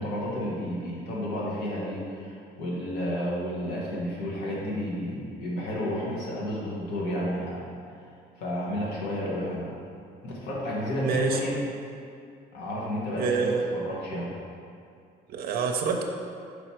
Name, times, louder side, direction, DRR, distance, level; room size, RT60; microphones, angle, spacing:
voice 1, 0.0-7.7 8.4-9.8 10.2-11.6 12.5-14.3, equal, 90° left, -5 dB, 1.5 m, -31 dB
voice 2, 11.0-11.4 13.2-13.6 15.3-16.0, right 5 dB, 65° right, 2 dB, 0.5 m, -27 dB
5.0 x 4.9 x 4.3 m, 2.3 s
cardioid pair, 110°, 17 cm